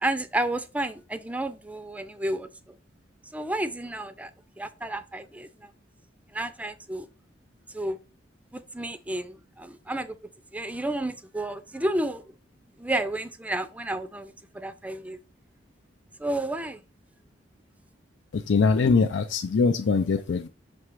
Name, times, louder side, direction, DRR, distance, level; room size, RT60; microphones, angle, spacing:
voice 1, 0.0-2.5 3.3-4.3 4.6-5.7 6.3-7.1 7.7-8.0 8.5-10.2 10.5-12.2 12.8-15.2 16.2-16.8, right 1 dB, 10° right, 0.5 m, -31 dB
voice 2, 18.3-20.5, left 4 dB, 80° left, 0.5 m, -22 dB
6.2 x 3.3 x 4.6 m
head